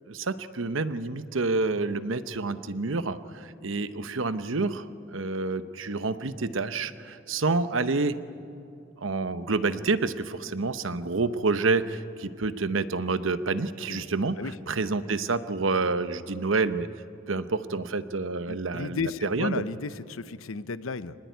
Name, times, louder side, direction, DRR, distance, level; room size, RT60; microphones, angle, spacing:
voice 1, 0.1-8.2 9.0-14.4 14.7-16.9 17.3-19.6, right 3 dB, 75° right, 12 dB, 0.9 m, -28 dB
voice 2, 18.5-21.2, left 4 dB, 85° left, 14 dB, 0.8 m, -34 dB
25.5 x 20.0 x 9.3 m, 2.7 s
head